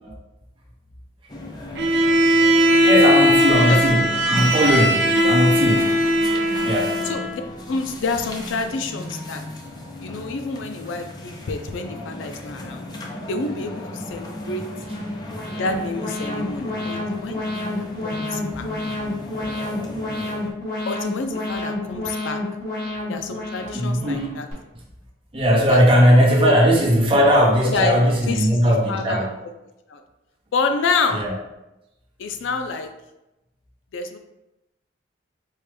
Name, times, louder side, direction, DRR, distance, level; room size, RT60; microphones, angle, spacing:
sound 1, 1.3-20.5, left 1 dB, 20° left, 0.4 m, -36 dB
Bowed string instrument, 1.8-7.4, equal, 65° right, 0.5 m, -18 dB
voice 1, 2.7-5.9 6.6-7.0 16.3-16.8 23.7-24.3 25.3-29.4 31.1-31.4, equal, 30° right, -1 dB, 0.7 m, -18 dB
voice 2, 7.7-9.4 10.0-12.9 13.3-14.6 15.6-18.7 20.9-22.4 23.1-24.5 25.7-25.8 26.4-26.6 27.6-29.3 29.9-30.0 30.5-31.2 32.2-32.9 33.9-34.2, left 4 dB, 90° left, 7 dB, 0.4 m, -28 dB
Alarm, 14.7-24.5, left 2 dB, 55° left, 1.4 m, -30 dB
4.6 x 2.2 x 3.2 m, 0.96 s
head